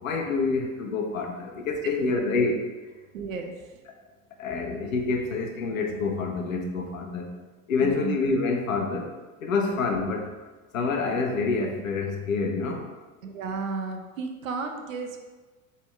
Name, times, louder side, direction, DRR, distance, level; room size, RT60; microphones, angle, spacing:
voice 1, 0.0-2.6 4.4-7.3 7.7-9.1 9.4-10.3 10.7-12.8, left 4 dB, 75° left, 2 dB, 0.9 m, -27 dB
voice 2, 3.1-3.7 7.8-8.2 9.7-9.8 13.2-15.2, right 4 dB, 75° right, 5 dB, 0.7 m, -33 dB
4.4 x 3.5 x 3.3 m, 1.3 s
figure-of-eight pair, 80°, 41 cm